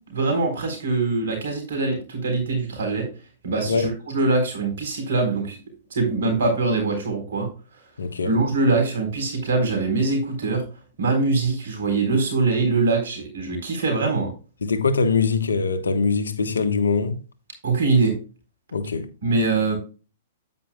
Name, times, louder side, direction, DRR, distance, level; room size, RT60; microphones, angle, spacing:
voice 1, 0.1-3.1 3.4-5.6 5.9-7.5 8.2-10.6 11.0-14.3 17.6-18.1 19.2-19.8, right 3 dB, 70° right, 3.9 m, -23 dB
voice 2, 8.0-8.3 14.6-17.2 18.7-19.4, left 4 dB, 85° left, 1.1 m, -23 dB
9.5 x 8.9 x 2.2 m
hypercardioid pair, 115°, 0 cm